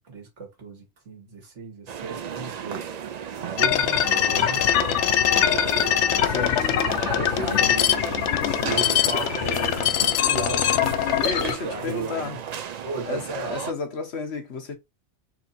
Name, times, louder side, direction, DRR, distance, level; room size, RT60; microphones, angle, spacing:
voice 1, 0.0-3.0 3.4-5.1 7.4-12.4 12.8-13.5, right 4 dB, 85° right, 1.9 m, -36 dB
sound 1, 1.9-13.7, right 8 dB, 55° right, 0.4 m, -34 dB
sound 2, 3.6-11.6, left 10 dB, 85° left, 0.9 m, -22 dB
voice 2, 6.2-6.7 7.2-7.7 11.2-12.4 13.0-14.8, left 4 dB, 65° left, 1.4 m, -32 dB
4.3 x 2.7 x 4.1 m
omnidirectional pair, 1.2 m